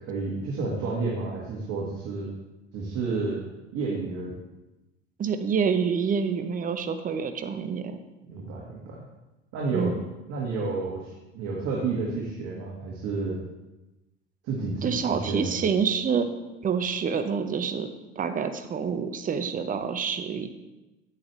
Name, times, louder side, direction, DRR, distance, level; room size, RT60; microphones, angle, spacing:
voice 1, 0.1-2.3 2.7-3.4 3.7-4.3 8.3-9.0 9.5-9.9 10.3-13.4 14.4-15.6, right 3 dB, 45° right, -4 dB, 1.8 m, -30 dB
voice 2, 5.2-8.0 9.7-9.9 14.8-16.3 16.6-20.5, right 6 dB, 25° right, 8 dB, 0.8 m, -27 dB
8.5 x 8.4 x 3.2 m, 1.0 s
hypercardioid pair, 75°, 36 cm